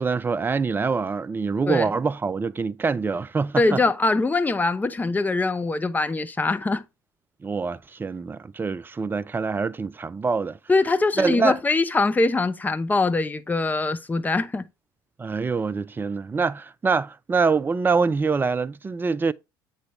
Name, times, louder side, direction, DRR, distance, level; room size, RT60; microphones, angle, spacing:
voice 1, 0.0-3.8 7.4-10.6 11.2-11.6 15.2-19.3, right 4 dB, 15° right, 0.4 m, -25 dB
voice 2, 3.6-6.8 10.7-14.7, left 3 dB, 15° left, 0.7 m, -23 dB
7.8 x 5.2 x 3.4 m
figure-of-eight pair, 60°, 12 cm